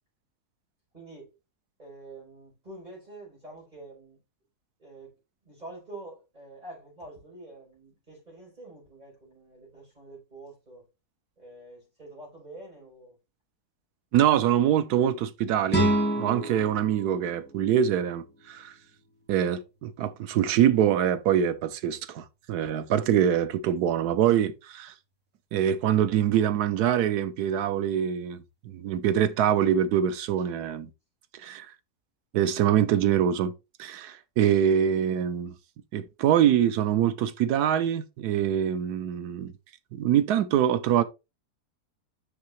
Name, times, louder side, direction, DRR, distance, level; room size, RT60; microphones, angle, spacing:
voice 1, 0.9-1.3 1.8-4.2 4.8-5.2 5.4-10.9 11.4-13.2, right 2 dB, 25° right, 5.0 m, -46 dB
voice 2, 14.1-18.7 19.3-24.9 25.5-28.4 28.6-30.9 31.3-31.7 32.3-33.5 33.8-35.5 35.9-39.5 39.9-41.0, right 10 dB, 85° right, 1.2 m, -24 dB
sound 1, 15.7-18.7, right 1 dB, 5° left, 1.4 m, -29 dB
6.7 x 6.3 x 3.0 m
omnidirectional pair, 1.7 m